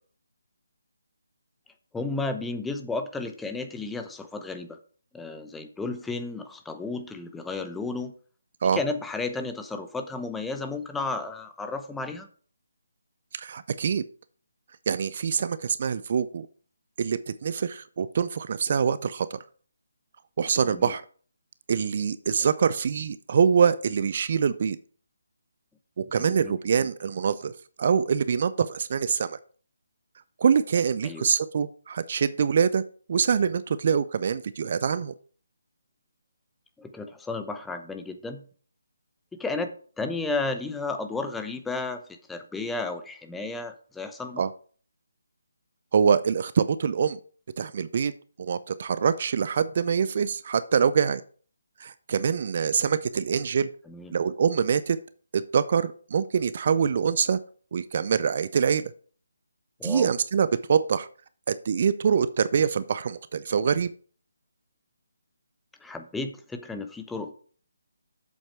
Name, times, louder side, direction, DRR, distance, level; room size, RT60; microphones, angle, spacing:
voice 1, 1.9-4.8 5.1-8.1 8.7-12.3 20.6-20.9 26.1-26.5 31.0-31.3 36.8-38.4 39.4-42.0 42.3-44.4 53.9-54.1 59.8-60.1 65.8-67.3, left 3 dB, 5° left, 7 dB, 0.9 m, -33 dB
voice 2, 13.3-14.0 14.9-16.5 17.0-19.4 20.4-21.0 21.7-24.8 26.0-27.5 27.8-29.4 30.4-32.8 33.1-35.1 44.4-44.5 45.9-47.2 47.6-48.1 48.4-51.2 51.8-53.7 54.1-55.0 55.3-57.4 57.7-58.9 59.8-61.1 61.5-63.9, right 6 dB, 45° right, 15 dB, 0.5 m, -24 dB
8.1 x 7.3 x 4.7 m, 0.43 s
figure-of-eight pair, 145°, 0 cm